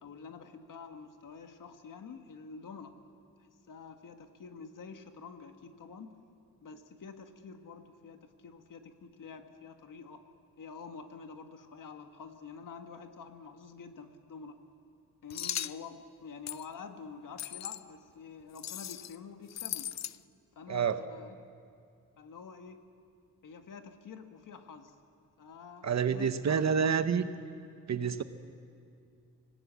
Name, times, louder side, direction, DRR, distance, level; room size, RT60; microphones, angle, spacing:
voice 1, 0.0-3.0 3.4-6.1 6.6-10.2 10.6-14.6 15.2-19.9 20.5-21.4 22.2-22.8 23.4-24.9 25.4-26.9, left 5 dB, 75° left, 6 dB, 1.7 m, -48 dB
sound 1, 15.3-15.8 16.5-16.7 17.4-17.8 18.6-19.2 19.5-20.2, left 11 dB, 55° left, 0.5 m, -38 dB
voice 2, 25.8-27.2 27.9-28.2, right 7 dB, 55° right, 10 dB, 1.0 m, -28 dB
25.5 x 18.0 x 8.3 m, 2.4 s
wide cardioid pair, 160°, 32 cm